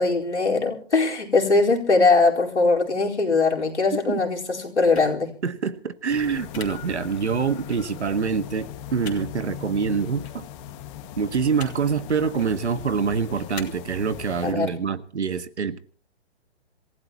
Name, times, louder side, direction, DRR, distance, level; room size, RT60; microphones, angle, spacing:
voice 1, 0.0-5.3 14.4-14.8, left 3 dB, 85° left, -1 dB, 4.3 m, -21 dB
sound 1, 4.9-5.1 6.5-6.6 7.7-7.8 9.0-9.2 10.2-10.3 11.5-11.7 12.3-12.5 13.5-13.6, left 6 dB, 70° left, 3.1 m, -38 dB
voice 2, 5.4-10.5 11.2-15.8, right 6 dB, 75° right, 13 dB, 1.6 m, -25 dB
sound 2, 6.1-14.5, left 11 dB, 25° left, 1.8 m, -39 dB
27.0 x 16.0 x 2.9 m, 0.43 s
figure-of-eight pair, 140°, 34 cm